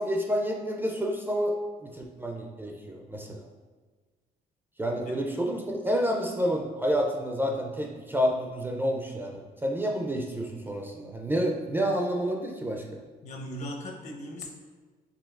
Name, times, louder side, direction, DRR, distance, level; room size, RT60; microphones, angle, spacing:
voice 1, 0.0-3.5 4.8-12.8, equal, 10° right, 1 dB, 0.4 m, -29 dB
voice 2, 13.2-14.5, equal, 45° left, 2 dB, 0.8 m, -38 dB
5.1 x 3.0 x 2.4 m, 1.4 s
cardioid pair, 110°, 17 cm